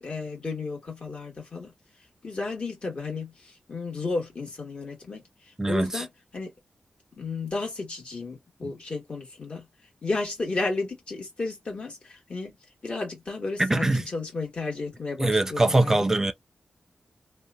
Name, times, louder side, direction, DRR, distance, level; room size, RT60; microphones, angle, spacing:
voice 1, 0.0-1.7 2.2-5.3 5.7-6.1 6.3-6.5 7.2-9.6 10.0-12.6 12.8-16.1, left 3 dB, 50° left, 1.5 m, -33 dB
voice 2, 5.6-6.1 8.6-8.7 13.6-14.0 15.2-16.3, right 2 dB, 20° right, 0.5 m, -23 dB
2.7 x 2.2 x 2.4 m
wide cardioid pair, 110°, 3 cm